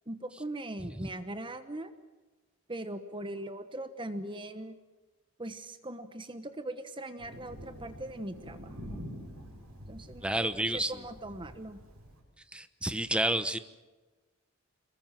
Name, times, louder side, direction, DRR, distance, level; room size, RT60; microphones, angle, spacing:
voice 1, 0.1-1.9 2.7-4.8 5.4-9.0 9.9-11.8, right 1 dB, 25° right, 10 dB, 1.2 m, -40 dB
Thunder, 7.2-12.2, equal, 85° right, 7.2 m, -47 dB
voice 2, 10.2-11.0 12.5-13.6, right 1 dB, 5° right, 11 dB, 0.9 m, -30 dB
26.0 x 22.5 x 7.5 m, 1.2 s
head